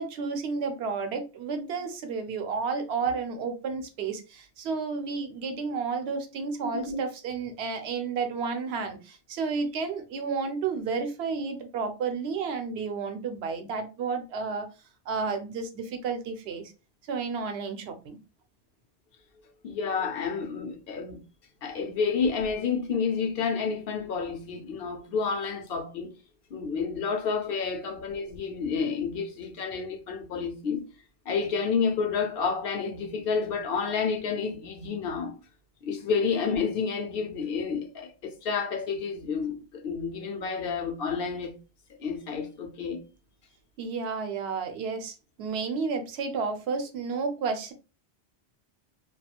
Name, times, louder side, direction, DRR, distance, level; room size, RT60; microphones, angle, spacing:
voice 1, 0.0-14.7 15.1-16.7 17.1-18.2 43.8-47.7, right 5 dB, 75° right, 0.8 m, -31 dB
voice 2, 19.6-21.2 21.6-26.1 26.5-30.9 31.3-35.3 35.8-41.5 42.0-43.0, left 5 dB, 65° left, 0.7 m, -30 dB
2.4 x 2.3 x 2.7 m
omnidirectional pair, 1.1 m